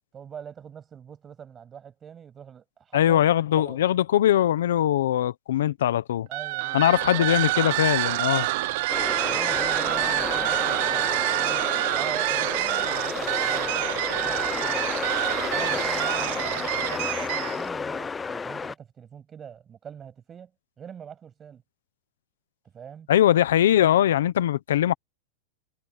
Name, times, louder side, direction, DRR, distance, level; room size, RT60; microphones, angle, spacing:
voice 1, 0.1-3.2 3.5-3.8 5.5-5.7 6.3-7.7 8.6-8.8 9.2-14.9 15.5-20.5 20.8-21.6 22.7-23.1, right 8 dB, 20° right, 7.8 m, -43 dB
voice 2, 2.9-6.3 6.7-8.5 23.1-24.9, left 11 dB, 85° left, 1.0 m, -21 dB
sound 1, 6.3-17.7, right 20 dB, 60° right, 0.6 m, -27 dB
sound 2, 8.9-18.7, left 5 dB, 15° left, 0.6 m, -31 dB
supercardioid pair, 140°, 0 cm